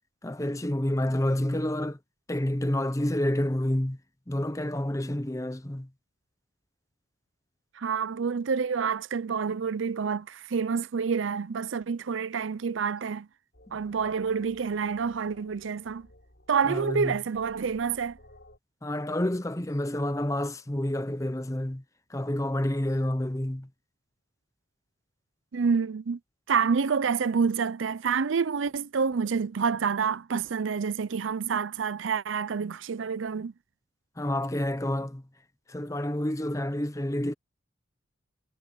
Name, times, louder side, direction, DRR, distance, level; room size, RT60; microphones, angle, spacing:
voice 1, 0.2-2.0 2.3-4.0 4.3-5.9 13.7-13.8 16.7-17.2 18.8-21.8 22.1-23.7 34.2-35.2 35.7-37.3, left 1 dB, 15° left, 0.8 m, -29 dB
voice 2, 7.7-13.3 13.7-16.1 16.5-18.2 25.5-26.2 26.5-33.5, right 6 dB, 80° right, 0.5 m, -28 dB
sound 1, 13.5-18.6, left 1 dB, 60° left, 5.5 m, -56 dB
head